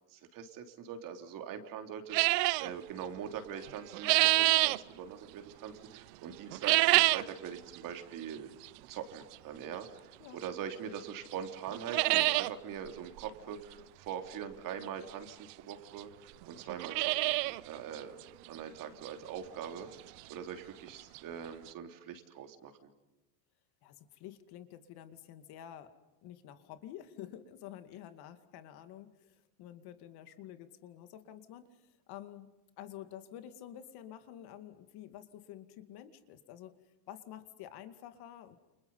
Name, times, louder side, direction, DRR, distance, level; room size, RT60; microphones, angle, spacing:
voice 1, 0.1-8.5 8.9-18.2 18.5-22.9, right 8 dB, 45° right, 6 dB, 3.3 m, -43 dB
sound 1, 2.1-2.7 3.6-4.8 6.5-7.3 7.7-7.8 8.6-8.7 10.4-10.5 11.0-11.1 11.3-11.4 11.7-12.5 12.9-13.0 13.2-13.3 14.8-14.9 15.7-15.8 16.0-16.1 16.6-17.6 17.9-18.0 18.5-18.6 19.1-19.2 20.9-21.0 21.1-21.2 21.7-21.8, right 23 dB, 80° right, 0.8 m, -26 dB
voice 2, 23.8-26.0 26.2-32.5 32.8-36.8 37.1-38.6, left 11 dB, 55° left, 9 dB, 2.4 m, -49 dB
29.5 x 29.0 x 5.6 m, 1.0 s
cardioid pair, 150°, 47 cm